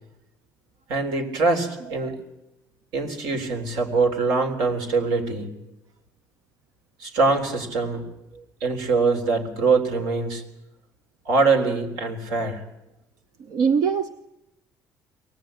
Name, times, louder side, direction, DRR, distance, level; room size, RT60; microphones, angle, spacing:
voice 1, 0.9-2.2 2.9-5.5 7.0-8.0 8.6-10.4 11.3-12.6, right 3 dB, 90° right, 4 dB, 3.9 m, -23 dB
voice 2, 13.5-14.1, right 6 dB, 70° right, 10 dB, 0.8 m, -23 dB
23.5 x 18.0 x 9.1 m, 0.94 s
cardioid pair, 120°, 7 cm